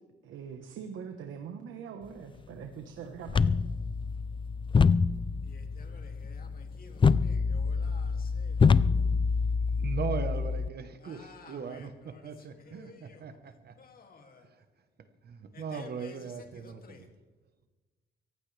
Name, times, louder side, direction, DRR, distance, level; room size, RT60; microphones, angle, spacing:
voice 1, 0.2-3.6, right 7 dB, 80° right, 1.3 m, -43 dB
sound 1, 3.3-10.7, left 5 dB, 25° left, 0.4 m, -26 dB
voice 2, 5.4-8.7 11.0-13.4 13.8-14.5 15.5-17.1, left 4 dB, 45° left, 2.5 m, -53 dB
voice 3, 9.7-11.9 12.2-13.7 14.4-14.6 15.2-17.1, right 6 dB, 55° right, 1.2 m, -39 dB
22.0 x 15.5 x 3.4 m
cardioid pair, 90°, 20 cm